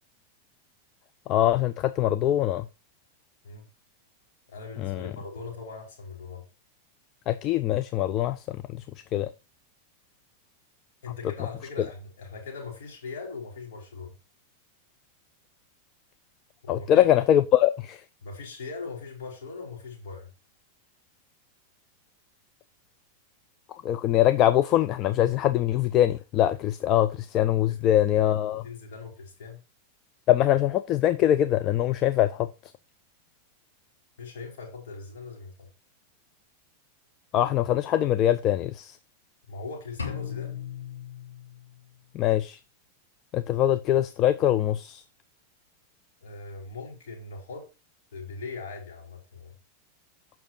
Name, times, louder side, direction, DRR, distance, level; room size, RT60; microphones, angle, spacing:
voice 1, 1.3-2.7 4.8-5.1 7.3-8.8 9.1-9.3 16.7-18.0 23.7-28.7 30.3-32.5 37.3-39.0 42.1-42.6 43.3-45.0, left 12 dB, 35° left, 0.6 m, -23 dB
voice 2, 4.5-6.5 11.0-14.1 16.6-17.1 18.2-20.3 27.7-28.0 28.6-29.6 34.2-35.7 39.5-40.6 46.2-47.7 48.1-49.5, left 4 dB, 55° left, 5.2 m, -40 dB
sound 1, 40.0-42.0, left 8 dB, 75° left, 3.3 m, -37 dB
8.6 x 6.0 x 4.6 m
figure-of-eight pair, 90°, 0 cm